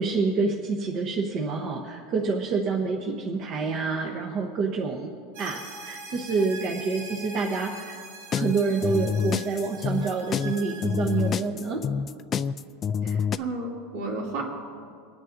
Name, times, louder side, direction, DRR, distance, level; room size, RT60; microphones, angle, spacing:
voice 1, 0.0-5.1 5.4-8.0 8.3-11.8, right 4 dB, 35° right, 0 dB, 1.0 m, -27 dB
sound 1, 5.3-11.5, right 3 dB, 85° right, 2.0 m, -42 dB
sound 2, 8.3-13.4, left 7 dB, 25° left, 0.3 m, -27 dB
voice 2, 13.0-14.4, right 2 dB, 65° right, -2 dB, 2.9 m, -33 dB
27.5 x 9.6 x 2.7 m, 2.2 s
supercardioid pair, 160°, 0 cm